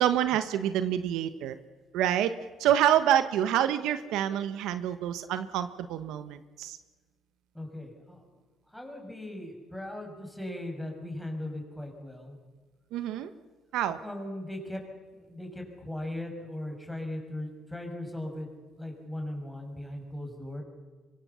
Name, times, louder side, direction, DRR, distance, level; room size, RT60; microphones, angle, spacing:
voice 1, 0.0-1.6 1.9-6.8 12.9-13.3 13.7-14.0, right 10 dB, 85° right, 11 dB, 1.3 m, -27 dB
voice 2, 7.5-8.2 8.7-12.4 14.0-14.8 15.2-18.5 18.8-20.6, left 1 dB, ahead, 2 dB, 6.2 m, -38 dB
24.5 x 23.5 x 7.1 m, 1.4 s
cardioid pair, 115°, 0 cm